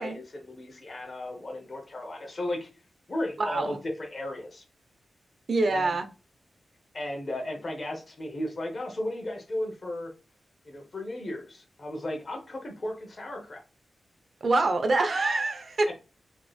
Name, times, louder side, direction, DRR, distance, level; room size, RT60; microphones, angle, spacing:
voice 1, 0.0-2.7 3.1-4.6 5.6-5.9 6.9-10.1 10.6-13.6 15.9-16.0, left 1 dB, 40° left, 0.9 m, -35 dB
voice 2, 3.4-3.8 5.5-6.1 14.4-15.9, right 2 dB, 55° right, 0.6 m, -25 dB
3.2 x 3.1 x 2.4 m
wide cardioid pair, 90°, 0 cm